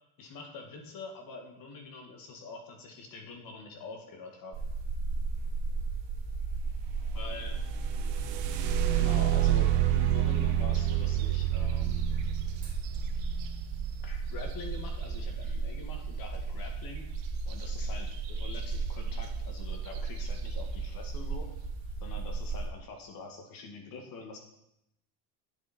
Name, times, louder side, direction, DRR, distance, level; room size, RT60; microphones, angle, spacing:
voice 1, 0.2-4.7 7.1-7.6 8.9-12.1 14.0-17.1 17.5-21.6 22.0-24.4, left 3 dB, 50° left, 3 dB, 1.9 m, -45 dB
sound 1, 4.5-22.7, right 4 dB, 20° right, 2.8 m, -35 dB
sound 2, 7.6-15.4 17.5-17.6 18.1-18.6 19.2-19.3 19.9-20.2, right 14 dB, 75° right, 1.2 m, -29 dB
11.5 x 7.5 x 4.3 m, 0.84 s
cardioid pair, 150°, 45 cm